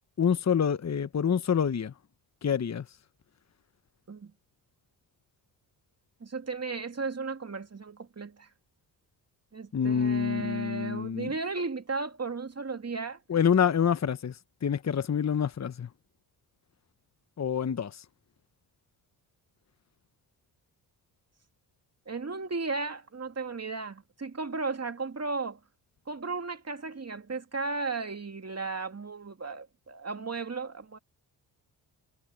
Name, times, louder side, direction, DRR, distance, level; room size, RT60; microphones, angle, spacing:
voice 1, 0.2-1.9 2.4-2.9 9.7-11.3 13.3-14.4 14.6-15.9 17.4-18.0, left 7 dB, 35° left, 1.1 m, -27 dB
voice 2, 6.2-8.5 9.5-13.2 22.1-25.6 26.1-31.0, right 4 dB, 30° right, 2.5 m, -35 dB
hypercardioid pair, 50°, 47 cm